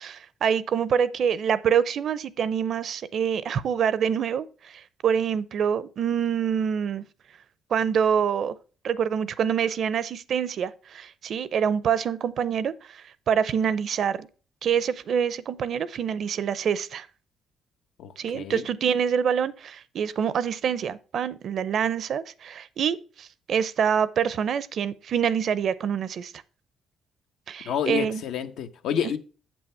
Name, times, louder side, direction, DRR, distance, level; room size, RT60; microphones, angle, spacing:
voice 1, 0.0-7.0 7.7-8.6 8.8-14.3 14.6-17.1 18.2-26.3 27.5-28.2, right 7 dB, 65° right, 0.6 m, -26 dB
voice 2, 18.0-18.6 27.6-29.2, left 8 dB, 80° left, 1.0 m, -29 dB
7.7 x 6.2 x 4.4 m
cardioid pair, 90°, 0 cm